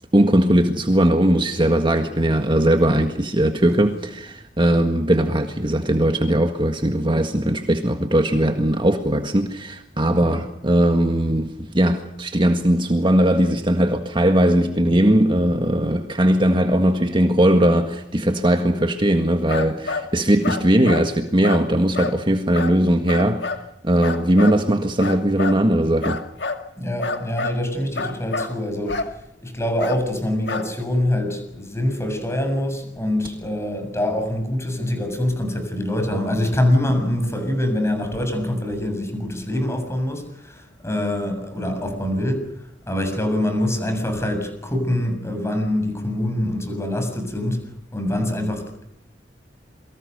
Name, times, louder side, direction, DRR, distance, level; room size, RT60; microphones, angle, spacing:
voice 1, 0.1-23.5 23.8-26.2, right 1 dB, 30° right, 1.7 m, -19 dB
sound 1, 19.5-20.1 20.4-21.1 21.4-21.7 21.9-22.2 22.5-22.7 23.1-23.6 24.0-24.6 25.0-25.6 26.0-26.6 27.0-27.6 28.0-28.5 28.9-29.1 29.8-30.0 30.5-30.8, left 3 dB, 70° left, 2.2 m, -27 dB
voice 2, 26.8-29.0 29.4-42.4 42.9-47.6 47.9-48.9, left 1 dB, 15° left, 7.2 m, -24 dB
28.5 x 23.5 x 6.8 m
head